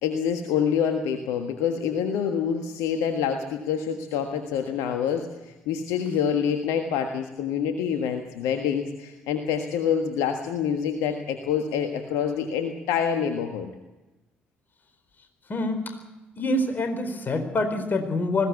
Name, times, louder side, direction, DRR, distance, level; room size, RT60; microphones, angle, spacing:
voice 1, 0.0-13.7, left 7 dB, 65° left, 5 dB, 1.5 m, -26 dB
voice 2, 15.5-15.9 16.4-18.5, left 2 dB, 35° left, 6 dB, 4.4 m, -26 dB
20.0 x 16.5 x 8.5 m, 1.1 s
figure-of-eight pair, 45°, 6 cm